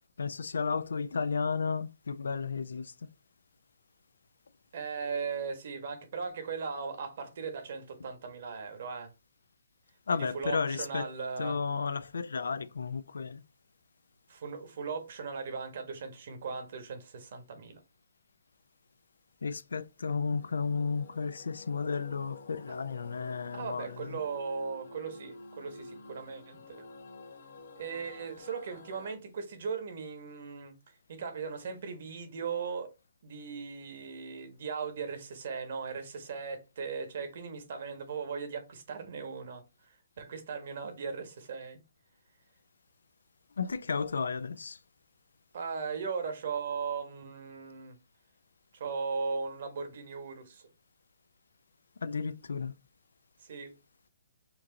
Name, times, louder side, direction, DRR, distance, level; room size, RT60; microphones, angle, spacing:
voice 1, 0.2-2.9 10.1-11.1 11.4-13.4 19.4-24.2 43.6-44.8 52.0-52.7, left 5 dB, 90° left, 0.4 m, -33 dB
voice 2, 4.7-9.1 10.1-11.6 14.3-17.8 23.5-26.9 27.8-30.7 31.1-32.9 33.2-39.6 40.2-41.8 45.5-47.9 48.7-50.6 53.4-53.8, right 5 dB, 60° right, 1.3 m, -38 dB
sound 1, 20.4-29.1, left 3 dB, 70° left, 0.9 m, -50 dB
4.4 x 2.5 x 3.8 m
hypercardioid pair, 150°, 0 cm